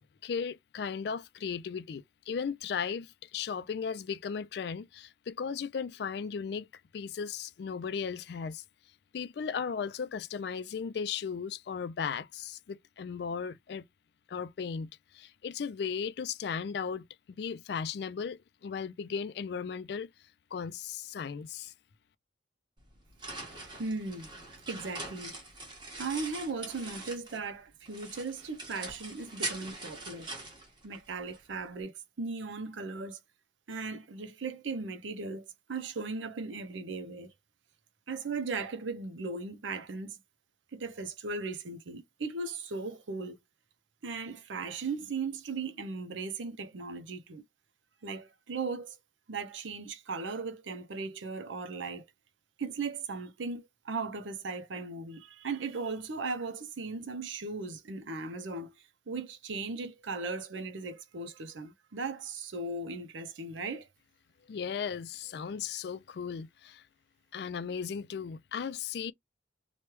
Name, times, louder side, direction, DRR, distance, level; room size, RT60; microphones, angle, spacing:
voice 1, 0.2-6.7 6.9-8.6 9.1-13.8 14.3-14.9 15.1-20.1 20.5-21.7 64.5-66.8 67.3-69.1, left 6 dB, 60° left, 0.3 m, -36 dB
sound 1, 22.8-27.5 27.9-31.4, right 2 dB, 25° right, 1.2 m, -42 dB
voice 2, 23.8-24.3 24.7-25.3 26.0-30.3 30.8-33.2 33.7-37.3 38.1-40.2 40.7-43.4 44.0-47.4 48.0-49.0 49.3-52.0 52.6-58.7 59.1-63.9, right 4 dB, 80° right, 0.6 m, -37 dB
3.1 x 2.2 x 3.0 m
head